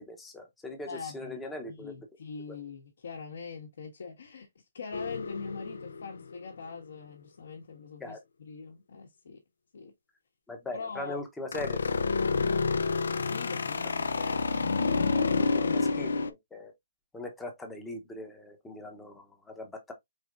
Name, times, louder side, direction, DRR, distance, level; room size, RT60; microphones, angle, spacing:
voice 1, 0.0-1.9 2.5-2.6 8.0-8.2 10.5-11.8 15.6-16.7 17.1-19.9, left 1 dB, 5° left, 0.8 m, -40 dB
voice 2, 0.9-1.4 1.7-9.4 9.7-9.9 10.7-11.2 13.2-15.8, left 5 dB, 65° left, 1.5 m, -43 dB
sound 1, 4.9-6.5 11.5-16.3, left 4 dB, 85° left, 0.6 m, -29 dB
4.8 x 4.1 x 2.5 m
hypercardioid pair, 170°, 0 cm